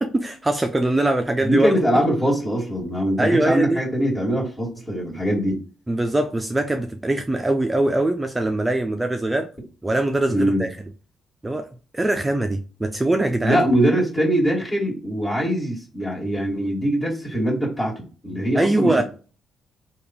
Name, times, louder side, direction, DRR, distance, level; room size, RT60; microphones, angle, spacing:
voice 1, 0.0-1.7 3.2-3.8 5.9-9.5 9.8-10.7 11.4-11.7 11.9-13.6 18.6-19.0, right 2 dB, 15° right, 0.4 m, -22 dB
voice 2, 1.4-5.6 10.3-10.6 13.4-19.0, equal, 25° left, 1.9 m, -22 dB
3.5 x 2.3 x 4.1 m
cardioid pair, 90°, 0 cm